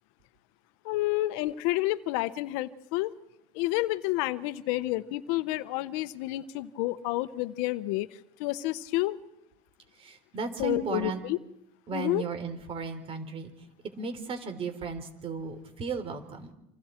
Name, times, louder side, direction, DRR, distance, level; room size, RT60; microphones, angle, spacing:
voice 1, 0.8-3.1 3.5-8.1 8.4-9.2 10.6-11.4 11.9-12.2, left 17 dB, 80° left, 14 dB, 1.0 m, -29 dB
voice 2, 10.0-11.2 11.9-13.5 14.0-16.5, right 5 dB, 35° right, 9 dB, 3.4 m, -35 dB
28.0 x 26.0 x 4.5 m, 0.83 s
cardioid pair, 145°, 16 cm